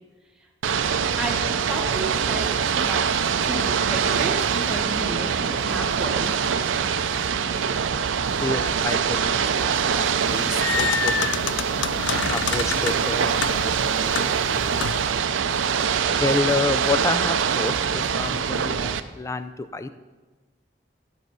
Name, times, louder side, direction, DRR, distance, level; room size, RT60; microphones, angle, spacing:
Ocean / Boat Water vehicle, 0.6-19.0, right 7 dB, 85° right, 0.5 m, -24 dB
voice 1, 1.7-3.0 3.4-6.3, right 2 dB, 5° right, -1 dB, 1.1 m, -32 dB
voice 2, 8.0-11.5 12.1-14.5 16.2-19.9, left 3 dB, 15° left, 10 dB, 0.3 m, -29 dB
sound 1, 10.2-15.2, left 7 dB, 75° left, 0.5 m, -29 dB
12.0 x 5.5 x 6.1 m, 1.3 s
head